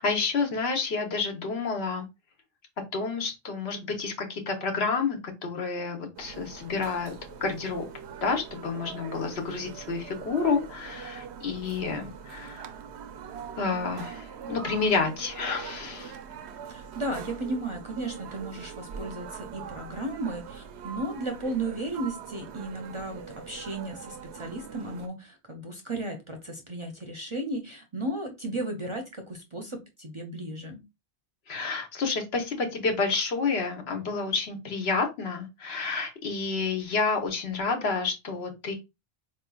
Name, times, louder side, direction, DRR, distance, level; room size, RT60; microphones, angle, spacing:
voice 1, 0.0-2.1 2.9-7.1 7.4-7.9 8.2-12.7 13.6-16.2 31.5-38.8, left 4 dB, 70° left, 4 dB, 1.2 m, -29 dB
sound 1, 6.2-25.1, right 7 dB, 80° right, 0.8 m, -43 dB
voice 2, 16.7-30.8, right 2 dB, 35° right, 3 dB, 0.6 m, -35 dB
4.4 x 2.9 x 2.2 m, 0.23 s
omnidirectional pair, 1.1 m